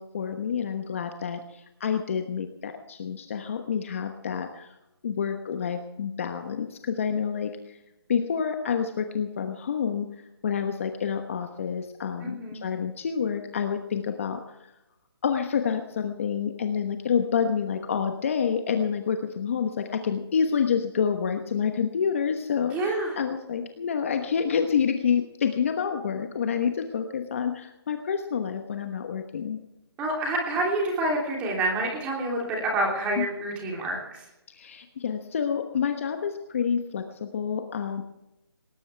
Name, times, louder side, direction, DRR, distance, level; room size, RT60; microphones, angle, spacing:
voice 1, 0.0-4.7 5.0-7.5 8.1-10.1 10.4-14.6 15.2-29.6 33.2-33.3 34.5-38.0, left 7 dB, 30° left, 6 dB, 1.1 m, -28 dB
voice 2, 12.2-12.6 22.7-23.1 30.0-34.0, right 2 dB, 10° right, -1 dB, 3.1 m, -27 dB
19.5 x 19.5 x 3.4 m, 0.92 s
hypercardioid pair, 170°, 14 cm